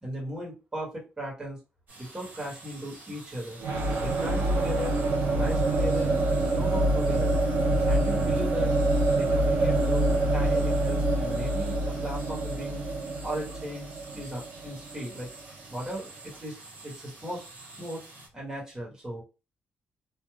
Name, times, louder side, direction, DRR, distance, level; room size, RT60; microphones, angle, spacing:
voice 1, 0.0-1.6 2.0-3.6 4.0-7.3 7.8-8.8 9.1-12.8 13.2-15.3 15.7-16.6 16.8-17.4 17.8-18.1 18.3-19.2, equal, 20° right, -4 dB, 1.3 m, -37 dB
sound 1, 1.9-18.3, right 2 dB, 50° right, 1.4 m, -48 dB
sound 2, 3.6-15.4, right 2 dB, 90° right, 0.7 m, -26 dB
3.1 x 2.3 x 2.3 m, 0.28 s
wide cardioid pair, 155°, 4 cm